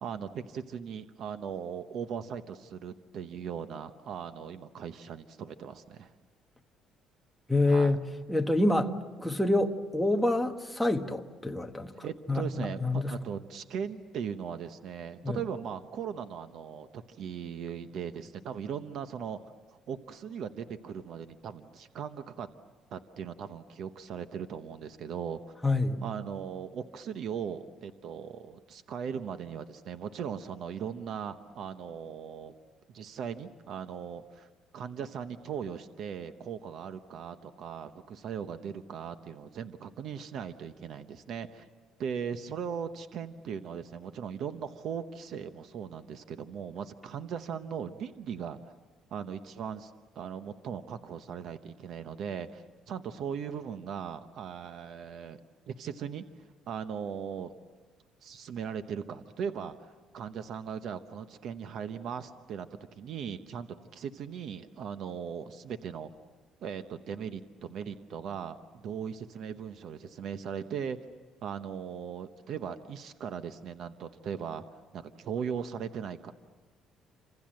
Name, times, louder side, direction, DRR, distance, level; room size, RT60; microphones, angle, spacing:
voice 1, 0.0-6.1 7.6-8.0 12.0-19.4 19.7-22.5 22.9-25.5 26.0-32.5 32.9-41.7 42.0-48.7 49.1-55.4 55.7-57.5 58.2-62.7 62.9-66.1 66.6-71.0 71.4-74.6 74.9-76.3, right 7 dB, 50° right, 0.9 m, -38 dB
voice 2, 7.5-8.0 8.3-8.9 9.2-11.9 12.3-13.1 15.2-15.4 25.6-26.0, left 2 dB, 5° left, 1.2 m, -27 dB
29.0 x 26.5 x 7.6 m
cardioid pair, 165°, 0 cm